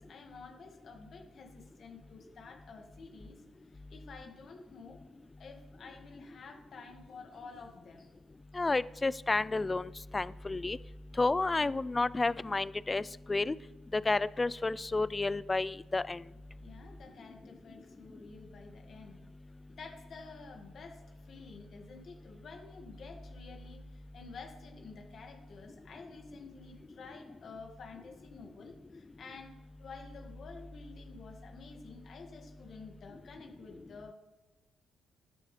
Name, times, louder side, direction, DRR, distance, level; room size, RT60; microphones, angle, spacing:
voice 1, 0.0-3.4 3.7-5.0 5.4-8.1 8.5-8.6 16.6-19.2 19.7-29.5 29.8-34.1, left 4 dB, 55° left, 3 dB, 1.9 m, -51 dB
voice 2, 8.5-10.8 11.2-13.0 13.3-13.5 13.9-16.2, left 3 dB, 20° left, 19 dB, 0.3 m, -31 dB
13.5 x 10.5 x 3.3 m, 1.2 s
cardioid pair, 90°, 0 cm